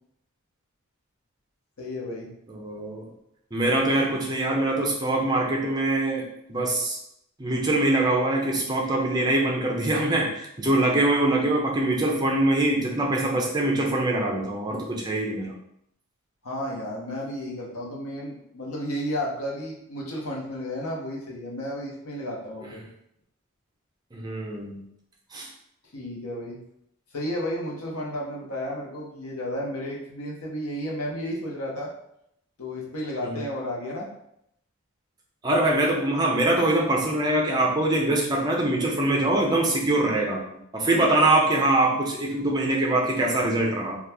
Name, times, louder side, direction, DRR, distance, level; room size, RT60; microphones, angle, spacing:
voice 1, 1.8-2.3 3.6-3.8 16.4-22.9 25.9-26.6 27.1-31.9 32.6-34.1, equal, 75° left, -3 dB, 0.9 m, -32 dB
voice 2, 2.5-3.1 3.5-7.0 7.4-15.5 24.1-24.8 25.3-25.5 33.2-33.4 35.4-40.4 40.7-44.0, right 2 dB, 20° right, -1 dB, 0.5 m, -23 dB
2.8 x 2.3 x 3.3 m, 0.76 s
head